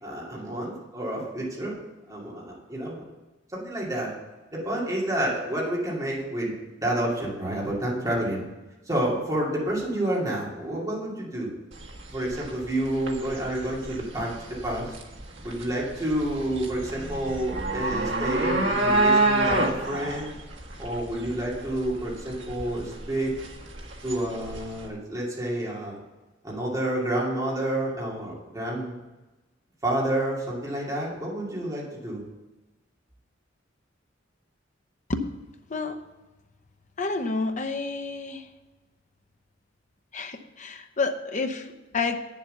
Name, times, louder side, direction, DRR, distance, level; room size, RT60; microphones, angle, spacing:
voice 1, 0.0-1.8 2.1-3.0 3.5-4.1 4.5-8.4 8.9-11.5 12.1-14.3 14.6-15.0 15.4-20.3 20.8-23.4 24.0-26.0 26.4-29.0 29.8-32.2, right 1 dB, 20° right, -5 dB, 2.7 m, -29 dB
sound 1, 11.7-24.9, right 2 dB, 75° right, 1.5 m, -28 dB
voice 2, 37.0-38.5 40.1-42.2, left 3 dB, 40° left, 6 dB, 0.8 m, -29 dB
9.0 x 7.4 x 6.8 m, 1.1 s
head